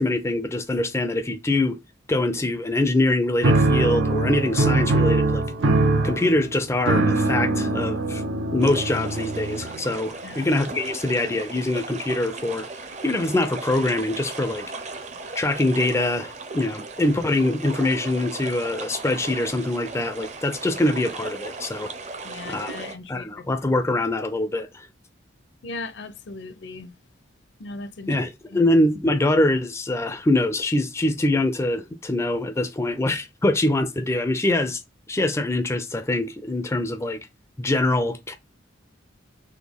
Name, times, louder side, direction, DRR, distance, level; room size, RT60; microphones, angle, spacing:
voice 1, 0.0-1.8 2.1-5.4 6.0-8.2 8.5-12.7 13.0-14.7 15.4-21.9 22.5-22.7 23.1-24.9 28.1-34.8 35.1-37.2 37.6-38.3, left 2 dB, 15° left, 0.4 m, -24 dB
sound 1, 3.4-9.9, right 2 dB, 80° right, 0.6 m, -22 dB
sound 2, 8.6-22.9, right 3 dB, 35° right, 0.7 m, -37 dB
voice 2, 22.2-23.5 25.6-27.0 27.6-28.1 28.5-28.7, left 3 dB, 65° left, 0.6 m, -38 dB
4.1 x 2.6 x 3.4 m
head